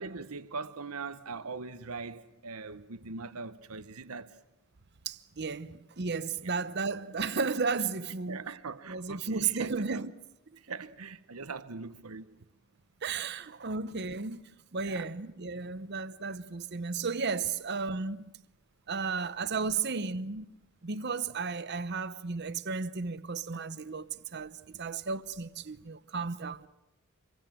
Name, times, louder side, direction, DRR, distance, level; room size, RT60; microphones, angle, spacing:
voice 1, 0.0-4.4 6.4-6.5 8.3-10.0 10.6-12.4 14.8-15.1, right 4 dB, 90° right, 1.0 m, -41 dB
voice 2, 5.1-8.4 8.9-10.1 13.0-18.3 18.9-26.7, right 5 dB, 50° right, 0.9 m, -34 dB
27.5 x 23.0 x 7.6 m
head